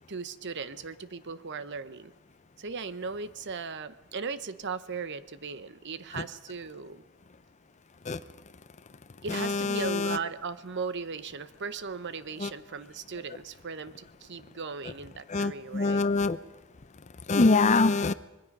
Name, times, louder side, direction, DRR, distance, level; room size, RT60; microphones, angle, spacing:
voice 1, 0.1-2.1 2.6-7.0 9.2-16.1, right 5 dB, 55° right, 14 dB, 0.9 m, -37 dB
voice 2, 9.3-10.2 12.4-12.5 15.3-16.4 17.3-18.1, left 3 dB, 35° left, 14 dB, 0.6 m, -24 dB
26.0 x 21.0 x 5.4 m, 1.0 s
head